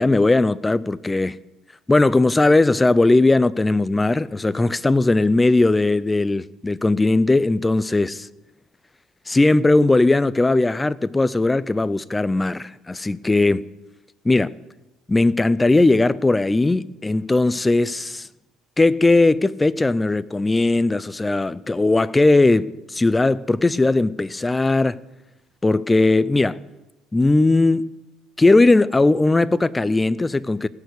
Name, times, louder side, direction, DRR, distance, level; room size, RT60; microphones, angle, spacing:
voice 1, 0.0-1.4 1.9-8.3 9.3-13.7 14.2-14.6 15.1-18.3 18.8-25.0 25.6-26.6 27.1-27.9 28.4-30.7, left 2 dB, 10° left, 0.4 m, -18 dB
17.0 x 6.7 x 8.2 m
cardioid pair, 125°, 0 cm